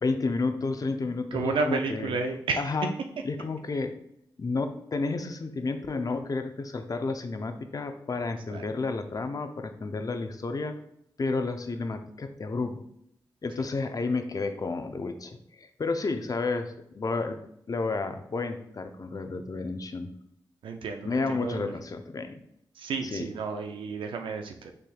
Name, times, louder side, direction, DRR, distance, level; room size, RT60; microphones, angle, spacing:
voice 1, 0.0-2.9 3.2-3.9 4.4-10.7 11.2-12.8 13.4-17.4 17.7-20.1 21.0-22.4 23.0-23.3, left 3 dB, 45° left, 7 dB, 0.6 m, -31 dB
voice 2, 1.3-2.6 8.5-8.6 20.6-21.7 22.8-24.7, right 4 dB, 85° right, 4 dB, 0.4 m, -31 dB
6.6 x 3.4 x 2.3 m, 0.72 s
cardioid pair, 45°, 8 cm